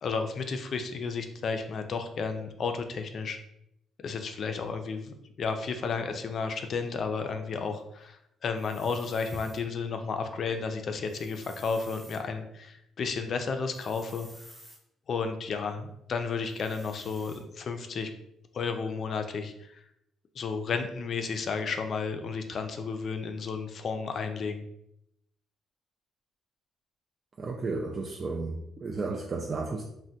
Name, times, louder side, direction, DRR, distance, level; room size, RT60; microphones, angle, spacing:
voice 1, 0.0-3.4 4.0-14.3 15.1-18.1 18.5-19.8 20.4-24.6, left 5 dB, 50° left, 7 dB, 0.3 m, -32 dB
sound 1, 8.6-9.6 11.0-12.2 13.7-14.8 16.5-17.4, equal, 5° right, 0.7 m, -52 dB
voice 2, 27.4-29.8, right 3 dB, 35° right, 0 dB, 0.3 m, -33 dB
3.3 x 2.1 x 2.7 m, 0.78 s
cardioid pair, 115°, 0 cm